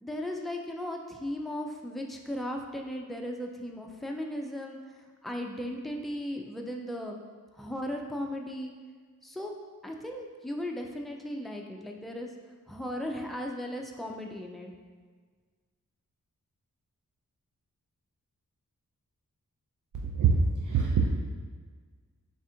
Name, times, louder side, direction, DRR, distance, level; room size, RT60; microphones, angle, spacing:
voice 1, 0.0-7.2 7.5-8.7 9.2-12.3 12.7-14.7, left 1 dB, ahead, 1 dB, 0.3 m, -36 dB
voice 2, 20.0-21.1, right 5 dB, 65° right, -1 dB, 0.5 m, -24 dB
3.5 x 2.4 x 4.2 m, 1.5 s
wide cardioid pair, 80°, 33 cm